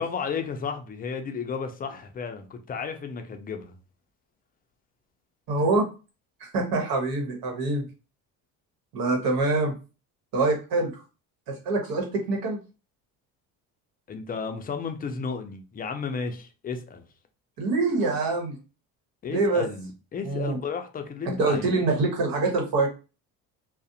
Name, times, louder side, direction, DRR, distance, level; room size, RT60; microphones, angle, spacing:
voice 1, 0.0-3.7 14.1-17.0 19.2-21.7, left 5 dB, 25° left, 0.4 m, -33 dB
voice 2, 5.5-5.8 6.4-7.8 8.9-9.7 10.3-11.0 11.5-12.6 17.6-18.5 19.3-19.6 20.2-20.6 21.4-22.9, right 3 dB, 75° right, 1.1 m, -25 dB
2.4 x 2.0 x 2.7 m
cardioid pair, 105°, 36 cm